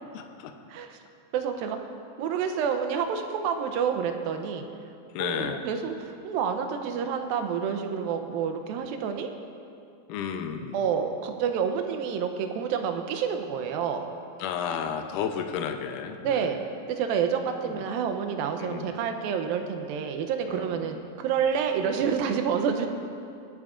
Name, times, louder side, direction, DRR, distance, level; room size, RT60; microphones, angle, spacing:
voice 1, 0.1-0.5 5.1-5.6 10.1-10.8 14.4-16.6 17.7-17.9 18.6-18.9 20.5-21.1, left 7 dB, 75° left, 5 dB, 2.1 m, -33 dB
voice 2, 1.3-1.8 2.2-4.7 5.2-9.3 10.7-14.1 16.2-16.6 16.9-22.9, right 7 dB, 85° right, 6 dB, 2.5 m, -28 dB
22.5 x 9.6 x 2.5 m, 2.5 s
omnidirectional pair, 4.1 m